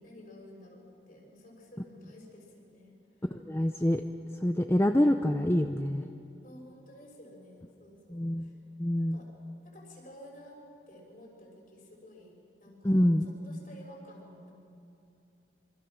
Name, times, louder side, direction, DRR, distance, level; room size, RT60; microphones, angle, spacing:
voice 1, 0.0-2.9 6.4-8.6 9.0-9.3 9.6-10.6 10.9-12.3 12.6-14.5, left 1 dB, 50° left, -1 dB, 6.2 m, -52 dB
voice 2, 3.3-4.0 4.4-6.0 8.1-8.5 8.8-9.2 12.8-13.3, left 1 dB, 15° left, 6 dB, 0.6 m, -26 dB
26.5 x 25.0 x 6.3 m, 2.6 s
head